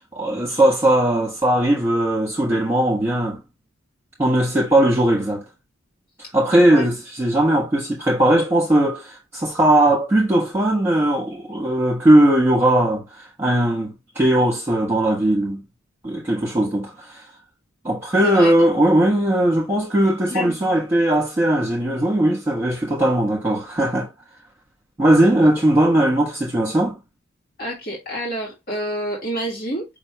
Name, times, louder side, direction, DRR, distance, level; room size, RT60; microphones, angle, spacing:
voice 1, 0.1-3.4 4.2-5.4 6.3-15.6 16.0-17.2 17.8-24.1 25.0-27.0, right 1 dB, 10° right, 1.5 m, -18 dB
voice 2, 18.2-18.5 20.3-20.6 27.6-30.0, equal, 45° left, 2.0 m, -28 dB
5.3 x 3.1 x 3.1 m
head